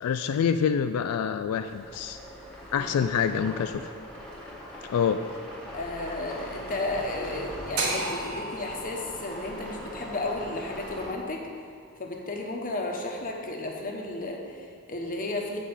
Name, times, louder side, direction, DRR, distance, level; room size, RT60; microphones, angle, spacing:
voice 1, 0.0-2.2 2.7-3.9 4.8-5.2, left 7 dB, 85° left, 9 dB, 0.3 m, -26 dB
sound 1, 1.6-11.1, equal, 5° left, 1.6 m, -41 dB
voice 2, 2.7-3.3 5.7-11.4 12.0-15.6, left 2 dB, 40° left, 1 dB, 1.1 m, -33 dB
sound 2, 7.8-11.9, right 2 dB, 80° right, 1.5 m, -35 dB
7.7 x 4.9 x 7.2 m, 2.1 s
head